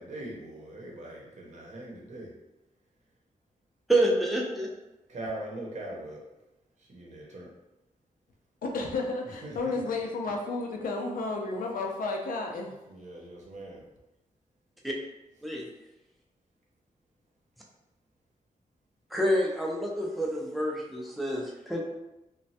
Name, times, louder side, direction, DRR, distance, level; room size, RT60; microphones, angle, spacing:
voice 1, 0.0-2.3 5.1-6.2 6.8-7.5 9.2-9.8 12.9-13.8, right 1 dB, 60° right, -3 dB, 0.7 m, -41 dB
voice 2, 3.9-4.7 14.8-14.9 15.4-15.6 19.1-21.8, right 1 dB, ahead, -2 dB, 0.4 m, -27 dB
voice 3, 8.6-12.7, left 3 dB, 90° left, 1 dB, 0.5 m, -32 dB
3.0 x 2.2 x 2.7 m, 0.95 s
wide cardioid pair, 175°, 14 cm